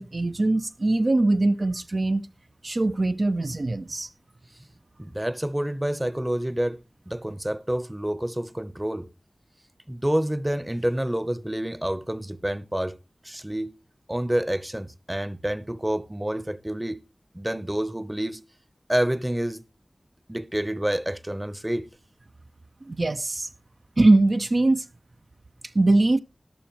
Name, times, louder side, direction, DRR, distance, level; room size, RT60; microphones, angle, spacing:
voice 1, 0.0-2.2 2.6-4.1 22.8-23.5 24.0-24.9 25.7-26.2, right 2 dB, 55° right, 0.5 m, -22 dB
voice 2, 5.0-6.8 7.1-9.1 9.9-13.0 13.2-13.7 14.1-17.0 17.3-18.4 18.9-19.6 20.3-21.9, right 1 dB, 15° right, 0.7 m, -28 dB
14.0 x 11.0 x 3.0 m
cardioid pair, 40°, 0 cm